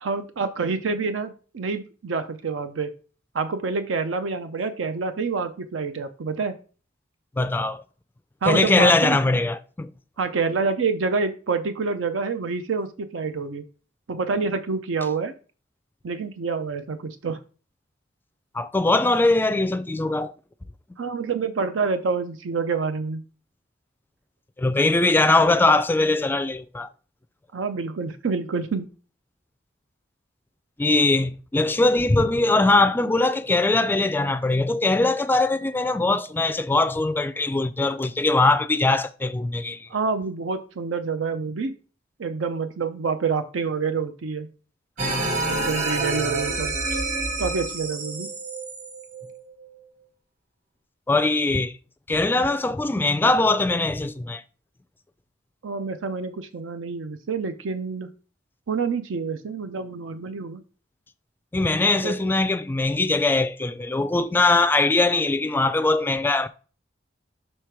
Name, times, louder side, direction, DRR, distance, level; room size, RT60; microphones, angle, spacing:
voice 1, 0.0-2.9 3.3-6.6 8.4-9.2 10.2-13.6 14.1-15.3 16.0-17.4 21.0-23.2 27.5-28.9 39.9-41.7 42.2-44.5 45.5-46.7 47.4-48.3 55.6-58.1 58.7-60.6 61.9-62.1, right 4 dB, 85° right, 0.5 m, -27 dB
voice 2, 7.4-7.8 8.5-9.9 18.5-20.3 24.6-26.9 30.8-39.9 51.1-51.7 52.1-54.4 61.5-66.5, left 2 dB, 10° left, 0.3 m, -21 dB
sound 1, 45.0-49.9, right 2 dB, 40° right, 1.1 m, -28 dB
6.3 x 3.3 x 4.6 m
head